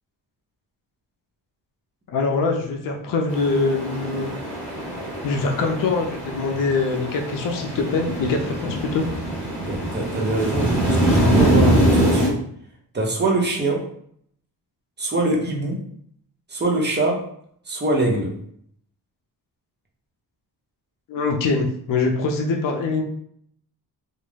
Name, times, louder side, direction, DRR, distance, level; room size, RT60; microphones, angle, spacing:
voice 1, 2.1-4.3 5.2-9.0 21.1-23.0, left 3 dB, 55° left, 2 dB, 0.5 m, -23 dB
sound 1, 3.3-12.3, right 1 dB, 5° left, 1.1 m, -23 dB
voice 2, 9.7-12.3 12.9-13.9 15.0-15.8 16.5-17.3 17.7-18.4, right 2 dB, 25° right, -1 dB, 0.6 m, -23 dB
2.3 x 2.0 x 3.2 m, 0.67 s
cardioid pair, 100°, 40 cm